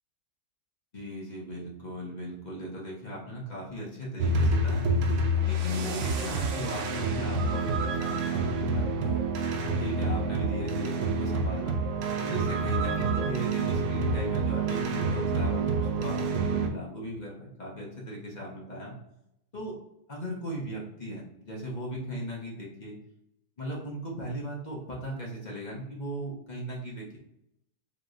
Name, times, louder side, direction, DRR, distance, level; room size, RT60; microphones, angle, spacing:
voice 1, 0.9-4.8 5.5-9.2 9.8-11.7 12.2-18.9 19.5-19.7 20.1-23.0 23.6-27.2, equal, 30° left, -4 dB, 1.2 m, -38 dB
sound 1, 4.2-16.7, right 2 dB, 80° right, 1.2 m, -28 dB
4.5 x 3.4 x 2.6 m, 0.82 s
omnidirectional pair, 1.7 m